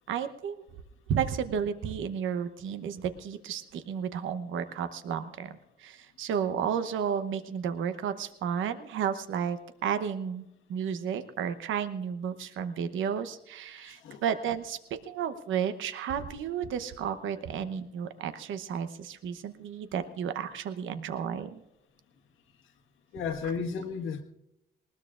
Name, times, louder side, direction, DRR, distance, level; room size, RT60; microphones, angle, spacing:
voice 1, 0.1-0.6 1.1-5.5 5.8-14.8 15.1-21.6, right 8 dB, 80° right, 10 dB, 0.9 m, -32 dB
voice 2, 13.7-14.2 23.1-24.2, left 6 dB, 80° left, 4 dB, 1.6 m, -34 dB
20.0 x 19.5 x 2.5 m, 0.90 s
cardioid pair, 90°, 20 cm